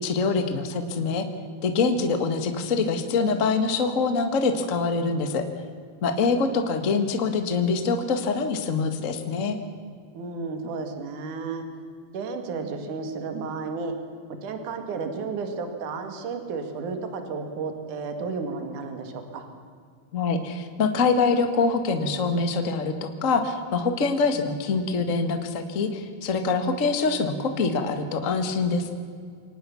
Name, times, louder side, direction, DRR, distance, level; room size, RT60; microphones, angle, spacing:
voice 1, 0.0-1.2 1.6-5.4 6.0-9.6 20.1-28.9, left 4 dB, 35° left, 7 dB, 1.3 m, -24 dB
voice 2, 10.1-11.6 12.1-13.9 14.4-19.5, right 4 dB, 65° right, 6 dB, 3.4 m, -32 dB
25.0 x 18.5 x 7.1 m, 2.1 s
omnidirectional pair, 4.0 m